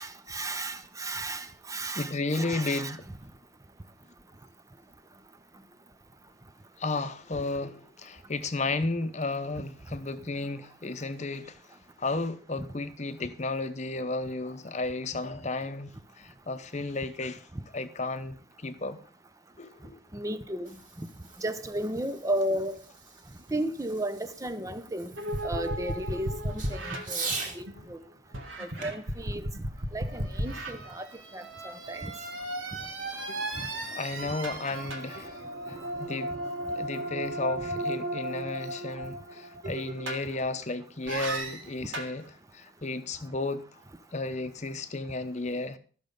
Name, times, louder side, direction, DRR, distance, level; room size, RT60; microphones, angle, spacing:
voice 1, 0.0-3.0 12.6-12.7 20.1-20.7 21.0-21.1 21.4-22.8 23.5-25.1 25.4-28.0 28.6-29.5 29.9-31.1 31.3-32.1 33.6-33.7 34.3-34.4 34.7-34.9, right 1 dB, 15° right, 0.7 m, -34 dB
voice 2, 1.9-3.0 6.8-11.6 12.0-17.5 17.7-19.0 19.6-20.0 28.8-28.9 33.9-36.4 36.7-42.2 42.5-43.8 44.1-45.8, left 3 dB, 35° left, 0.8 m, -33 dB
Fireworks, 20.5-27.6 28.8-30.4, right 4 dB, 45° right, 2.0 m, -42 dB
sound 1, 25.2-27.9 28.3-40.6 41.1-42.2, right 1 dB, 90° right, 1.7 m, -35 dB
13.5 x 6.5 x 5.2 m
head